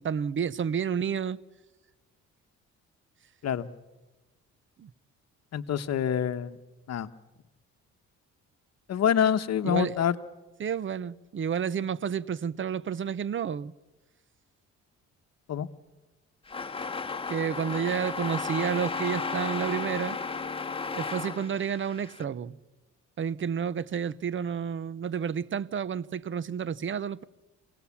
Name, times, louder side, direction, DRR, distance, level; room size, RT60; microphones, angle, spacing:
voice 1, 0.0-1.4 4.8-4.9 9.6-10.0 10.6-13.7 17.3-20.2 21.0-22.6 23.2-27.2, right 7 dB, 40° right, 0.8 m, -30 dB
voice 2, 5.5-6.6 6.9-7.1 8.9-10.1 15.5-15.7, left 9 dB, 60° left, 1.0 m, -26 dB
sound 1, 16.5-22.2, left 4 dB, 20° left, 1.6 m, -34 dB
27.0 x 18.5 x 7.1 m
cardioid pair, 90°, 30 cm